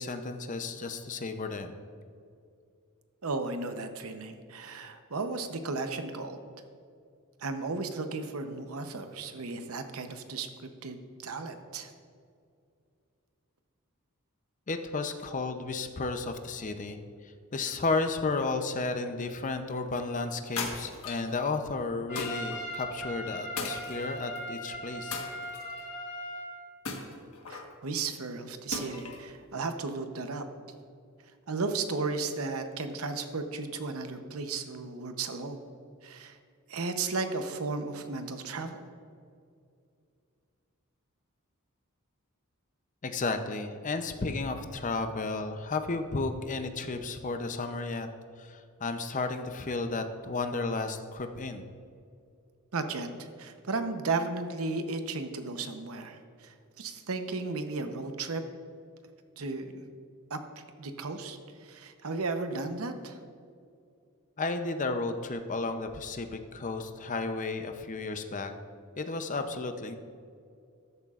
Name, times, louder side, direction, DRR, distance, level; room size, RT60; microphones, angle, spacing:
voice 1, 0.0-1.7 14.7-17.0 17.5-25.2 43.0-48.1 48.4-51.6 64.4-68.5 69.0-70.0, left 3 dB, 35° left, 7 dB, 0.6 m, -33 dB
voice 2, 3.2-6.4 7.4-11.9 27.5-30.4 31.5-35.7 36.0-36.4 36.7-38.8 52.7-58.4 59.4-59.8 60.3-63.2, right 3 dB, 70° right, 7 dB, 0.8 m, -35 dB
sound 1, 20.6-21.3 22.2-22.6 23.6-24.4 25.1-25.8 26.8-27.7 28.7-29.3, left 4 dB, 70° left, 1.4 m, -37 dB
Trumpet, 22.1-26.5, equal, 55° left, 2.5 m, -39 dB
13.5 x 11.0 x 2.5 m, 2.4 s
head